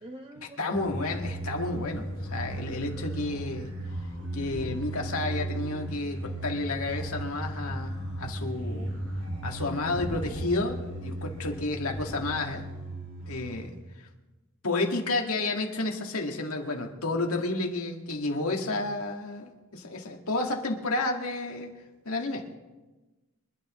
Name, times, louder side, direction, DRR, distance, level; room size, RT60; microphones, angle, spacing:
voice 1, 0.0-0.8 3.0-3.4 8.7-9.2, right 1 dB, 25° right, 4 dB, 0.7 m, -47 dB
voice 2, 0.6-3.7 4.3-8.9 9.4-12.7 13.3-13.7 14.6-21.7 22.1-22.4, left 2 dB, 80° left, 2 dB, 2.0 m, -31 dB
sound 1, 0.7-13.6, right 1 dB, 90° right, 5.8 m, -36 dB
25.5 x 11.5 x 3.1 m, 1.1 s
head